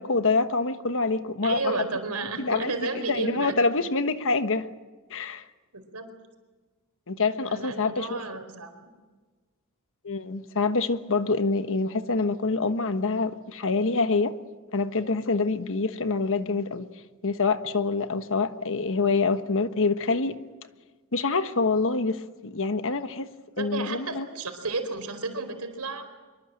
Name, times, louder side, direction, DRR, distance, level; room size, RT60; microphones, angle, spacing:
voice 1, 0.0-1.6 2.4-2.7 3.1-4.7 5.1-5.4 7.1-8.2 10.0-14.3 14.7-16.9 17.2-20.4 21.1-23.3 23.6-24.3, left 3 dB, 65° left, 1.3 m, -26 dB
voice 2, 1.4-3.6 5.7-6.1 7.5-8.7 23.6-26.1, right 3 dB, 90° right, 4.5 m, -32 dB
24.5 x 23.5 x 7.8 m
head